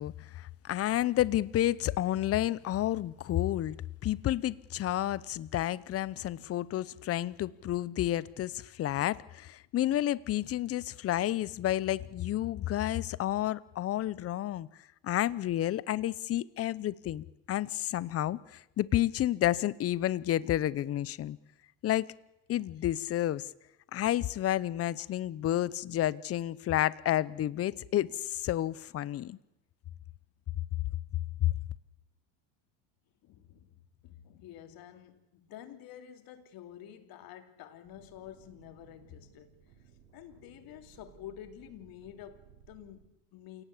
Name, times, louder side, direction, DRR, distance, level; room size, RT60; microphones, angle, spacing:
voice 1, 0.0-3.8 4.0-14.7 15.0-21.4 21.8-22.1 22.5-23.5 23.9-29.4 31.4-31.5, left 13 dB, 35° left, 0.8 m, -30 dB
voice 2, 33.2-39.5 40.1-43.6, left 11 dB, 55° left, 3.0 m, -49 dB
sound 1, 37.8-43.1, right 7 dB, 75° right, 6.6 m, -60 dB
28.0 x 18.0 x 8.5 m
supercardioid pair, 125°, 42 cm